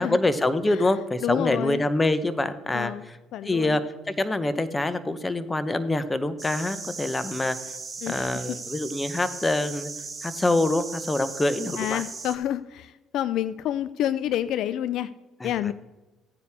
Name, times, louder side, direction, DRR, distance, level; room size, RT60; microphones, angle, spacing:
voice 1, 0.0-2.9 3.4-3.8 4.1-7.6 8.1-9.9 10.2-12.0 15.4-15.5, left 2 dB, 20° left, 13 dB, 1.0 m, -25 dB
voice 2, 1.2-1.8 2.7-3.1 3.3-3.8 8.0-8.6 11.8-15.1 15.4-15.7, left 11 dB, 70° left, 15 dB, 0.4 m, -29 dB
sound 1, 6.4-12.4, right 4 dB, 25° right, 2.1 m, -37 dB
15.0 x 9.6 x 3.6 m, 1.1 s
supercardioid pair, 70°, 0 cm